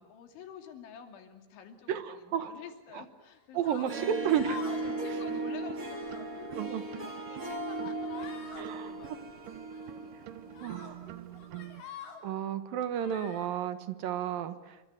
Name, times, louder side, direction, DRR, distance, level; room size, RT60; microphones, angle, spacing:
voice 1, 0.0-4.2 4.8-9.6 10.0-11.5 14.2-14.6, left 7 dB, 80° left, 5 dB, 5.1 m, -50 dB
voice 2, 1.9-2.5 2.9-3.0 3.5-4.8 6.6-6.8 8.6-9.2 10.6-11.0 12.2-14.9, right 9 dB, 65° right, 11 dB, 2.4 m, -33 dB
sound 1, 3.6-3.9 4.3-4.9 5.2-5.4 5.8-6.2 6.8-7.2 7.6-7.8 8.1-8.7 9.7-9.9 10.5-10.9 11.3-12.2 13.0-13.5, left 6 dB, 55° left, 5.3 m, -47 dB
Harp, 3.7-11.2, right 2 dB, 20° right, 2.8 m, -37 dB
sound 2, 4.2-11.8, right 14 dB, 85° right, 1.8 m, -48 dB
28.5 x 25.5 x 8.0 m, 1.2 s
omnidirectional pair, 5.3 m